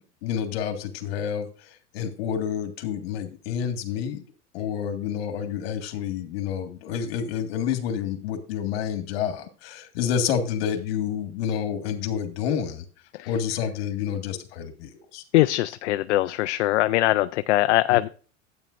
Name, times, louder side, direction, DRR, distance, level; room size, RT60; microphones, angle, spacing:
voice 1, 0.2-1.5 1.9-4.2 4.5-12.8 13.3-15.2, left 8 dB, 60° left, 6 dB, 1.9 m, -29 dB
voice 2, 15.3-18.1, left 16 dB, 75° left, 11 dB, 0.5 m, -22 dB
12.5 x 8.9 x 2.6 m, 0.39 s
supercardioid pair, 170°, 35 cm